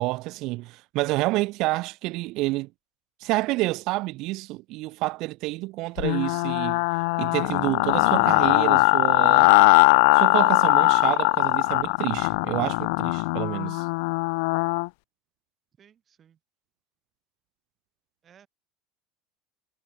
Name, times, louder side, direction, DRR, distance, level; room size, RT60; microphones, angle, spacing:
voice 1, 0.0-2.7 3.2-6.8 7.2-9.5 10.1-13.9, right 20 dB, 60° right, 1.7 m, -28 dB
sound 1, 6.0-14.9, left 30 dB, 70° left, 0.6 m, -20 dB
voice 2, 15.8-16.4 18.2-18.5, right 8 dB, 40° right, 7.8 m, -58 dB
hypercardioid pair, 90°, 0 cm